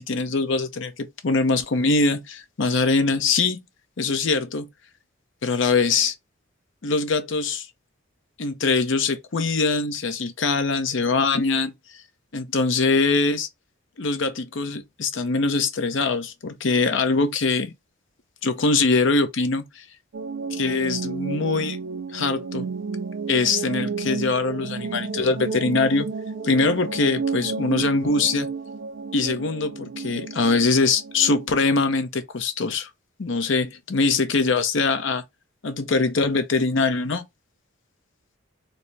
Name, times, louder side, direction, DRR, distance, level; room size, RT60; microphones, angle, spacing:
voice 1, 0.0-3.6 4.0-4.7 5.4-6.1 6.8-7.7 8.4-11.7 12.3-13.5 14.0-17.7 18.4-19.8 20.5-21.8 22.1-22.7 23.3-26.1 26.4-28.5 29.1-32.9 33.2-35.2 35.6-37.2, left 3 dB, 60° left, 0.6 m, -23 dB
sound 1, 20.1-31.5, right 5 dB, 55° right, 0.3 m, -32 dB
4.1 x 2.1 x 3.2 m
head